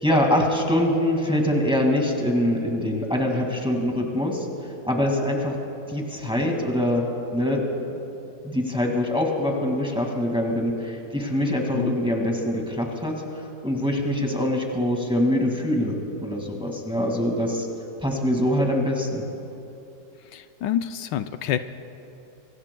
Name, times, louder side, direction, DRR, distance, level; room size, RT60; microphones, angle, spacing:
voice 1, 0.0-4.5 4.8-5.6 5.9-7.0 7.3-7.6 8.4-13.1 13.6-17.7 18.0-19.2, left 1 dB, 5° right, 0 dB, 1.9 m, -24 dB
voice 2, 20.3-21.6, left 10 dB, 80° left, 9 dB, 1.2 m, -27 dB
26.0 x 24.0 x 2.3 m, 2.8 s
omnidirectional pair, 1.9 m